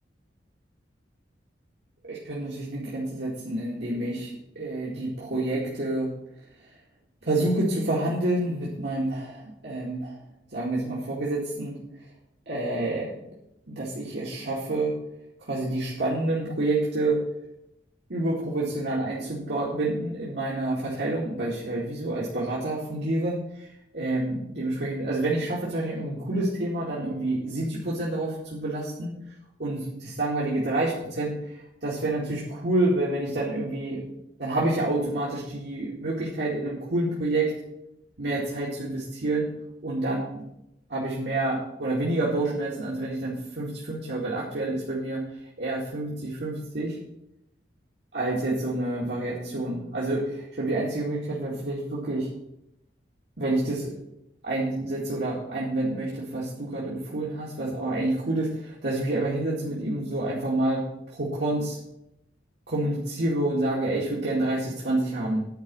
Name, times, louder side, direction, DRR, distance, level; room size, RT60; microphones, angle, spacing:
voice 1, 2.0-6.1 7.2-10.1 10.5-11.7 12.5-13.1 13.7-14.9 15.5-17.2 18.1-29.1 29.6-34.1 34.4-37.5 38.2-39.5 39.8-40.4 40.9-45.2 45.6-47.0 48.1-52.3 53.4-53.9 54.4-60.9 61.1-61.8 62.7-65.5, right 2 dB, 70° right, -7 dB, 2.2 m, -28 dB
10.5 x 5.1 x 7.6 m, 0.84 s
head